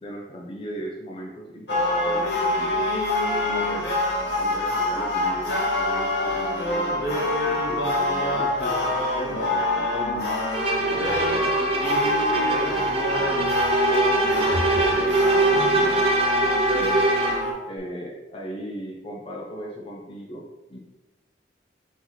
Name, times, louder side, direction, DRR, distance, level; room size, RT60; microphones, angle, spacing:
voice 1, 0.0-2.9 3.3-3.9 4.4-10.3 10.9-13.5 14.1-16.5 17.7-20.8, equal, 30° left, -1 dB, 0.4 m, -37 dB
sound 1, 1.7-17.5, left 2 dB, 75° left, 0.9 m, -25 dB
Bowed string instrument, 10.5-17.5, right 2 dB, 30° right, 0.5 m, -23 dB
4.4 x 2.7 x 3.9 m, 1.1 s
head